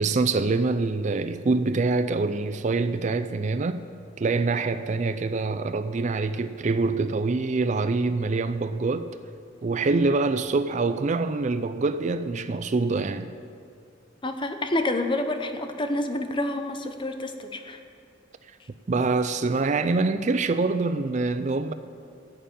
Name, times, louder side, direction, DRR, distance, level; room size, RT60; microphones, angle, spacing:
voice 1, 0.0-3.9 4.2-9.1 9.6-13.3 18.9-21.7, right 3 dB, 35° right, 0.4 m, -25 dB
voice 2, 14.2-17.8, left 1 dB, 25° left, 0.8 m, -28 dB
14.0 x 6.8 x 8.9 m
head